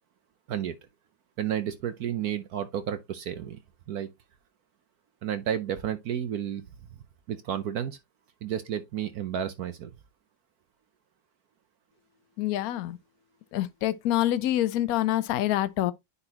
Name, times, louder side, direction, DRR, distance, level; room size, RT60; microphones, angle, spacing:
voice 1, 1.4-3.6 3.9-4.1 5.2-6.6 7.3-8.0 8.4-9.9, right 9 dB, 65° right, 1.1 m, -31 dB
voice 2, 12.4-13.0 13.5-15.9, left 13 dB, 65° left, 1.0 m, -26 dB
9.7 x 4.1 x 2.9 m
omnidirectional pair, 1.9 m